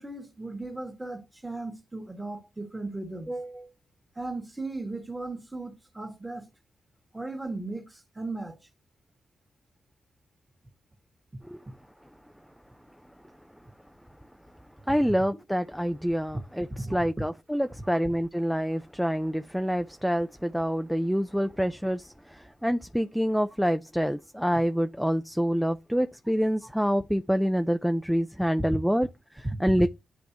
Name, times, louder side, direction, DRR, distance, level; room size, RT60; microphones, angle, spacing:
voice 1, 0.0-3.7 4.2-6.5 7.1-8.6 16.8-17.0 29.4-29.6, right 2 dB, 15° right, 1.9 m, -36 dB
voice 2, 14.9-29.9, equal, ahead, 0.5 m, -27 dB
10.0 x 3.5 x 2.9 m
cardioid pair, 60°, 0 cm